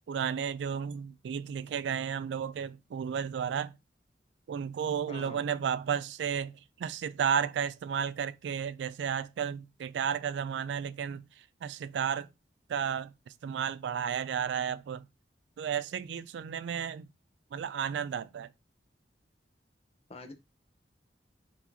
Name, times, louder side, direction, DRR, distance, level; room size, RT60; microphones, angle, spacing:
voice 1, 0.1-3.7 4.5-12.3 12.7-15.1 15.6-17.1 17.5-18.5, right 7 dB, 85° right, 0.3 m, -33 dB
voice 2, 5.1-5.4 20.1-20.3, left 3 dB, 35° left, 0.7 m, -45 dB
4.5 x 4.2 x 2.7 m
head